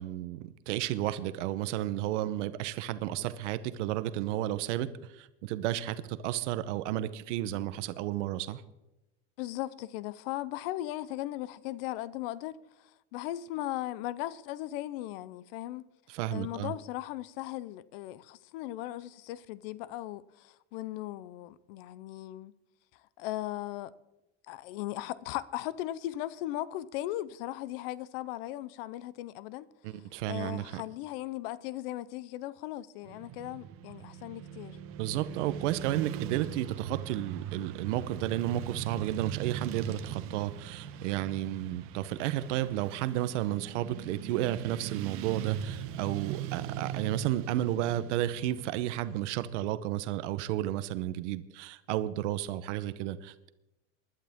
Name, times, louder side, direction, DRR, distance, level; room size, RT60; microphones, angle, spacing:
voice 1, 0.0-8.6 16.1-16.7 29.8-30.8 35.0-53.5, right 13 dB, 80° right, 0.9 m, -32 dB
voice 2, 9.4-15.9 16.3-22.5 23.2-23.9 24.5-29.7 30.3-34.8 46.6-46.7, left 15 dB, 55° left, 0.6 m, -38 dB
Motorcycle / Traffic noise roadway noise, 33.1-49.7, right 9 dB, 40° right, 1.1 m, -41 dB
20.0 x 11.5 x 3.6 m
cardioid pair, 175°, 35 cm